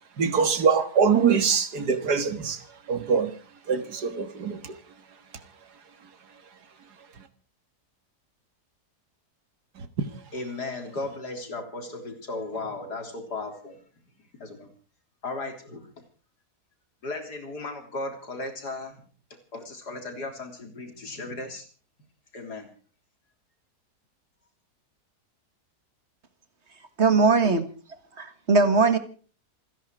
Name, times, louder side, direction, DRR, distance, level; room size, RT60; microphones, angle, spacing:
voice 1, 0.2-3.3 3.7-4.8, right 6 dB, 80° right, 11 dB, 2.2 m, -23 dB
voice 2, 10.3-13.8 14.4-14.7 15.2-15.9 17.0-19.0 19.5-21.7 22.3-22.7, left 2 dB, 80° left, 5 dB, 4.1 m, -36 dB
voice 3, 27.0-27.7 28.2-29.0, right 4 dB, 45° right, 10 dB, 1.9 m, -20 dB
28.0 x 10.5 x 4.7 m, 0.39 s
omnidirectional pair, 1.7 m